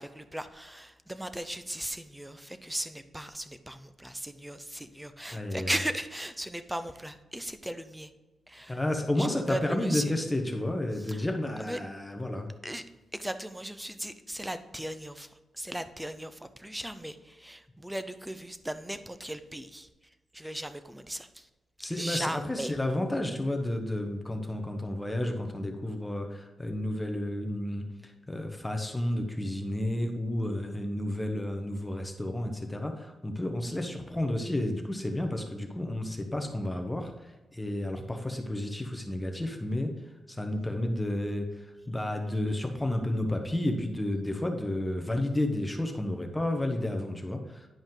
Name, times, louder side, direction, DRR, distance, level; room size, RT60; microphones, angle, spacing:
voice 1, 0.0-8.1 8.5-8.8 9.2-10.2 10.9-11.2 11.6-11.8 12.6-21.5 21.8-22.7, right 1 dB, 5° right, 10 dB, 0.6 m, -37 dB
voice 2, 5.3-5.7 8.7-12.5 21.8-39.9 40.3-47.7, left 1 dB, 10° left, 4 dB, 1.0 m, -31 dB
10.5 x 5.1 x 3.8 m, 1.1 s
cardioid pair, 115°, 0 cm